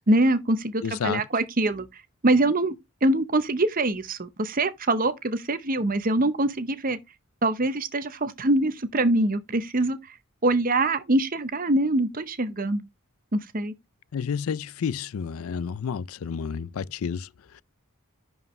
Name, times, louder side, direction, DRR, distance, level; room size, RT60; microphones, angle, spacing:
voice 1, 0.1-1.9 2.2-2.7 3.0-7.0 7.4-10.0 10.4-12.8 13.3-13.7, right 2 dB, 40° right, 0.9 m, -24 dB
voice 2, 0.8-1.2 14.1-17.6, left 6 dB, 75° left, 0.4 m, -30 dB
11.0 x 4.8 x 3.2 m
head